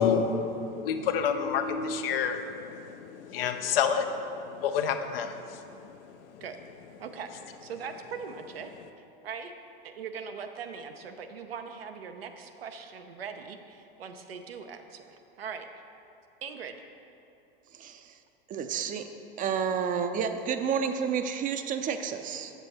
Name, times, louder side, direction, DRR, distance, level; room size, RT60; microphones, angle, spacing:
voice 1, 0.0-5.9, left 6 dB, 70° left, 7 dB, 0.6 m, -29 dB
voice 2, 7.0-7.3 7.6-8.7 9.2-9.5 9.8-15.7 16.4-16.8, right 6 dB, 85° right, 6 dB, 0.6 m, -40 dB
voice 3, 17.7-18.1 18.5-19.0 19.4-22.5, right 7 dB, 30° right, 8 dB, 0.5 m, -30 dB
6.9 x 6.8 x 4.2 m, 2.7 s
hypercardioid pair, 95°, 29 cm